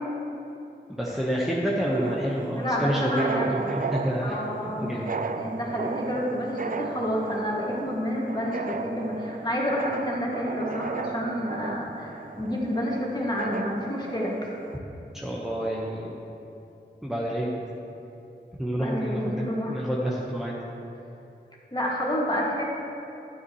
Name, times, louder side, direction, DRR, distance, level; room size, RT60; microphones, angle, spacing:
voice 1, 0.9-5.1 15.1-16.2 17.0-17.6 18.6-20.6, equal, ahead, -5 dB, 1.2 m, -28 dB
sound 1, 1.8-14.8, right 4 dB, 50° right, 0.5 m, -35 dB
voice 2, 2.6-3.7 4.2-5.0 5.3-14.5 18.8-19.8 21.7-22.6, equal, 25° left, -4 dB, 2.1 m, -29 dB
9.9 x 9.5 x 3.1 m, 2.8 s
cardioid pair, 45°, 19 cm